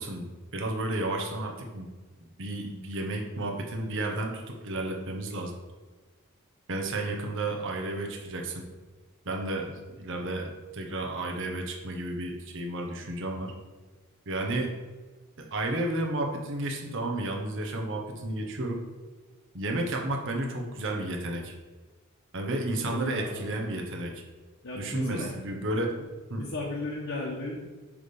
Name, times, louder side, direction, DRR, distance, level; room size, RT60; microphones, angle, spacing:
voice 1, 0.0-1.9 2.2-5.5 6.7-8.6 9.2-13.5 14.3-14.7 15.4-18.8 19.5-21.5 22.3-24.2 24.7-26.0 26.3-26.4, right 2 dB, 60° right, 2 dB, 1.1 m, -32 dB
voice 2, 22.8-23.4 24.6-25.3 26.4-27.6, left 2 dB, 65° left, -4 dB, 1.2 m, -35 dB
8.5 x 3.4 x 5.4 m, 1.3 s
head